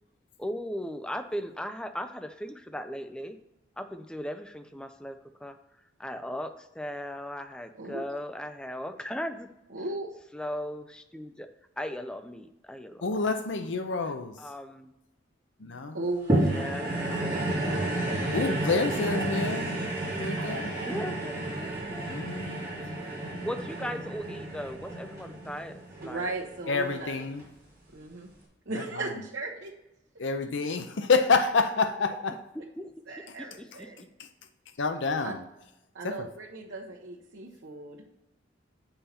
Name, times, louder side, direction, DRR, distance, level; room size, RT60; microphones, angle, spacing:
voice 1, 0.4-3.4 3.8-5.6 6.0-9.5 10.3-11.5 11.8-13.0 14.4-14.9 16.5-17.7 20.9-22.2 23.4-25.8 26.0-26.3 32.6-32.9 33.4-33.9, equal, 5° left, 8 dB, 0.4 m, -37 dB
voice 2, 9.7-10.1 15.9-16.8 18.8-19.2 20.3-21.0 26.0-27.2 27.9-28.3 28.7-29.7 33.1-34.0 35.2-35.4 35.9-38.0, right 2 dB, 75° right, -4 dB, 1.0 m, -37 dB
voice 3, 13.0-14.3 15.6-16.0 18.3-19.7 20.0-20.7 22.1-22.6 26.7-27.4 28.7-29.1 30.2-32.4 34.2-34.3 34.8-35.4 36.0-36.3, left 4 dB, 75° left, 8 dB, 0.6 m, -28 dB
sound 1, 16.3-26.8 27.4-27.5, right 1 dB, 15° right, 2.8 m, -31 dB
8.3 x 5.6 x 4.3 m, 0.93 s
head